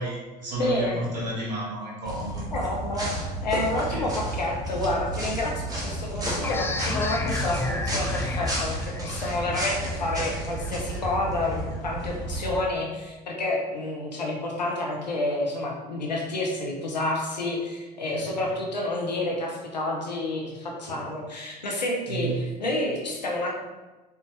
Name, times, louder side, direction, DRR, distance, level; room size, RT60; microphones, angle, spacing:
voice 1, 0.0-2.4 3.9-4.1 18.1-18.4 22.1-22.3, right 1 dB, 80° right, -6 dB, 1.2 m, -32 dB
voice 2, 0.6-1.0 2.5-23.6, left 2 dB, 85° left, -1 dB, 0.6 m, -29 dB
sound 1, 2.1-12.6, right 1 dB, 15° right, 1.3 m, -32 dB
sound 2, 6.4-11.8, left 3 dB, 10° left, 0.4 m, -33 dB
4.0 x 3.4 x 3.0 m, 1.2 s
figure-of-eight pair, 65°, 21 cm